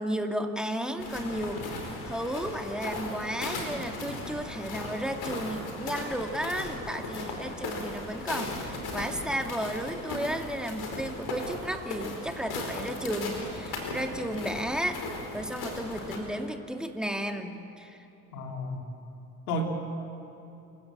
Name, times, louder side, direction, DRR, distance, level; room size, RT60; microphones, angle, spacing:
voice 1, 0.0-1.6 2.0-18.0, equal, ahead, 4 dB, 2.3 m, -33 dB
sound 1, 1.0-16.2, left 2 dB, 55° left, 4.8 m, -37 dB
voice 2, 18.3-18.9 19.5-19.7, left 1 dB, 80° left, 2 dB, 2.8 m, -31 dB
27.5 x 16.0 x 7.7 m, 2.8 s
figure-of-eight pair, 55°, 46 cm